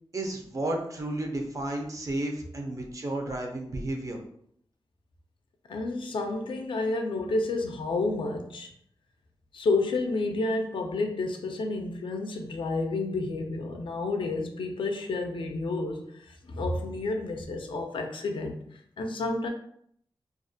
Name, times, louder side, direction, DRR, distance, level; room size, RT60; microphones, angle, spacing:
voice 1, 0.1-4.2, right 1 dB, 40° right, 1 dB, 0.4 m, -32 dB
voice 2, 5.7-8.7 9.5-16.0 16.5-18.6 19.0-19.5, left 2 dB, 70° left, 4 dB, 0.4 m, -30 dB
2.4 x 2.1 x 2.6 m, 0.67 s
wide cardioid pair, 120°, 9 cm